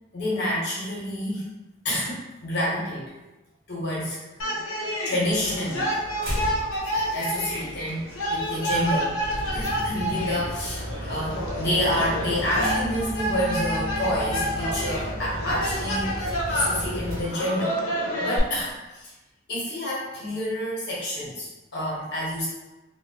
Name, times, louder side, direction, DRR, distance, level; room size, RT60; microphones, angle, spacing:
voice 1, 0.1-1.5 1.8-3.1 3.7-4.2 4.5-4.6 5.0-5.8 7.1-9.1 9.5-17.8 18.2-19.1 19.5-22.5, left 1 dB, 50° left, -6 dB, 1.1 m, -28 dB
sound 1, 4.4-18.4, equal, 75° left, 0.6 m, -29 dB
sound 2, 5.2-17.2, equal, 70° right, 1.2 m, -35 dB
Bass guitar, 12.6-15.7, equal, 5° right, 0.5 m, -36 dB
3.0 x 2.3 x 2.8 m, 1.1 s
head